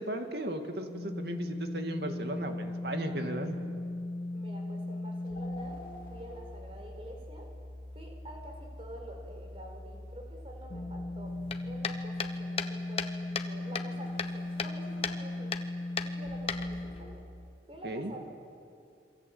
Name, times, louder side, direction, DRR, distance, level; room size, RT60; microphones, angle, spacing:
voice 1, 0.0-3.6 17.8-18.1, right 1 dB, 65° right, 5 dB, 2.3 m, -36 dB
sound 1, 0.9-17.2, left 2 dB, 50° left, 3.4 m, -38 dB
voice 2, 4.3-5.8 6.1-7.5 7.9-11.3 11.6-15.5 16.0-17.3 17.7-18.3, right 1 dB, 30° right, 2 dB, 4.9 m, -48 dB
sound 2, 11.5-13.5 13.7-14.8 15.0-15.2 15.5-15.7 16.0-17.0, left 6 dB, 30° left, 1.1 m, -35 dB
27.5 x 24.0 x 8.6 m, 2.5 s
head